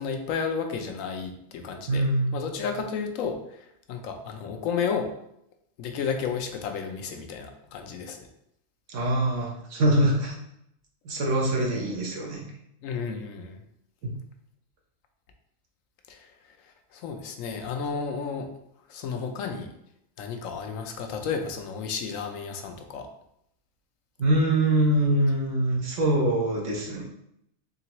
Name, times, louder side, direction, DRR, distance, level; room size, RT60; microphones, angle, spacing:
voice 1, 0.0-2.0 2.3-5.1 5.8-8.2 12.8-13.6 16.1-16.3 16.6-18.5 18.9-19.7 20.2-23.1, left 6 dB, 80° left, 5 dB, 1.0 m, -32 dB
voice 2, 1.9-2.3 8.9-10.3 11.0-12.4 14.0-14.1 24.2-27.0, right 1 dB, 70° right, 0 dB, 1.2 m, -24 dB
3.9 x 3.3 x 2.9 m, 0.76 s
omnidirectional pair, 1.4 m